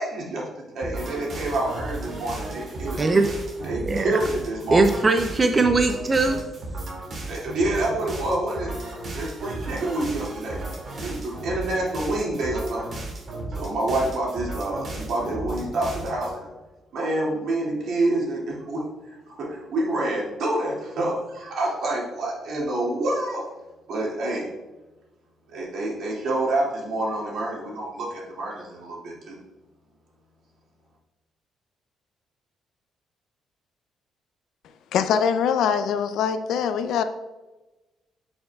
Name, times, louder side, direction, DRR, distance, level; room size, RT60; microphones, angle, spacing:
voice 1, 0.0-3.1 3.6-4.8 7.3-8.8 9.1-10.6 11.0-12.9 13.5-16.5 16.9-23.4 23.9-24.5 25.5-29.4, right 2 dB, 70° right, -3 dB, 2.2 m, -27 dB
sound 1, 0.8-16.3, right 2 dB, 50° right, 2.2 m, -35 dB
voice 2, 3.0-3.3 3.7-4.2 4.7-6.4, right 3 dB, 30° right, 6 dB, 0.5 m, -20 dB
voice 3, 34.9-37.0, left 7 dB, 80° left, 10 dB, 0.5 m, -23 dB
8.9 x 5.4 x 2.3 m, 1.1 s
cardioid pair, 90°, 0 cm